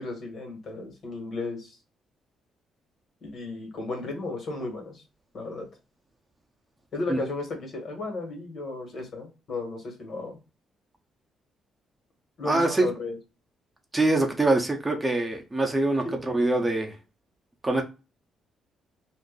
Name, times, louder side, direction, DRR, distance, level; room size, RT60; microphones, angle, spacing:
voice 1, 0.0-1.8 3.2-5.0 5.3-5.7 6.9-10.4 12.4-13.2 16.0-16.1, left 3 dB, 55° left, 1.5 m, -34 dB
voice 2, 12.5-12.9 13.9-17.0 17.6-17.8, right 2 dB, 15° right, 0.7 m, -24 dB
2.6 x 2.5 x 3.8 m
cardioid pair, 90°, 0 cm